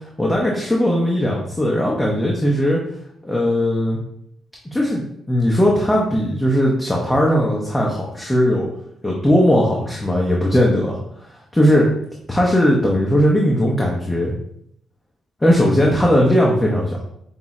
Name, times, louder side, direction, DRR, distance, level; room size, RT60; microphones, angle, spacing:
voice 1, 0.2-2.8 3.2-4.0 4.7-8.7 9.0-11.0 11.5-11.9 12.3-14.3 15.4-17.0, equal, 10° left, -3 dB, 0.7 m, -18 dB
5.5 x 2.0 x 3.6 m, 0.75 s
cardioid pair, 90°, 0 cm